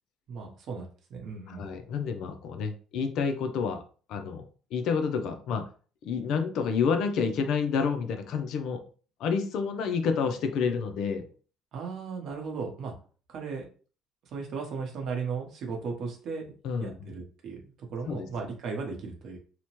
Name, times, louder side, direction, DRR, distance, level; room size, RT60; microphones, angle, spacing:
voice 1, 0.3-1.7 11.7-12.9 13.3-13.7 14.3-16.5 16.8-19.4, right 5 dB, 50° right, 1 dB, 0.8 m, -36 dB
voice 2, 1.5-3.8 4.1-5.7 6.0-8.8 9.2-11.3 16.6-17.1 18.1-18.3, left 6 dB, 60° left, 7 dB, 0.4 m, -29 dB
2.8 x 2.1 x 2.9 m, 0.39 s
cardioid pair, 155°, 0 cm